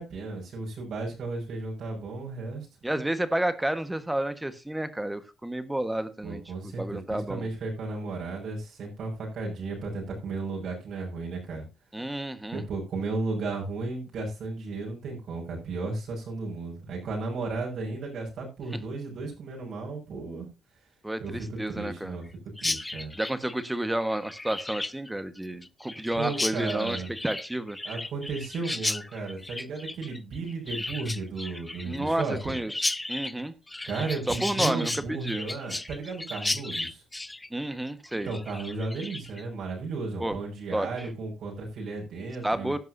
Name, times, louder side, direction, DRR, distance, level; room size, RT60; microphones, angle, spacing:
voice 1, 0.0-2.7 6.2-11.6 12.5-20.5 21.2-22.3 22.6-23.1 26.1-27.1 27.8-32.6 33.8-37.0 38.1-42.8, right 3 dB, 65° right, -1 dB, 6.0 m, -34 dB
voice 2, 2.8-7.5 11.9-12.6 21.0-22.2 23.2-27.0 27.2-27.8 31.8-32.7 33.1-33.5 34.3-35.4 37.5-38.3 40.2-40.4 40.7-41.1 42.4-42.8, right 1 dB, 10° right, 12 dB, 1.4 m, -30 dB
Chirp tweet, 22.6-39.4, left 2 dB, 15° left, 0.5 m, -34 dB
16.0 x 10.5 x 2.7 m, 0.27 s
cardioid pair, 90°, 0 cm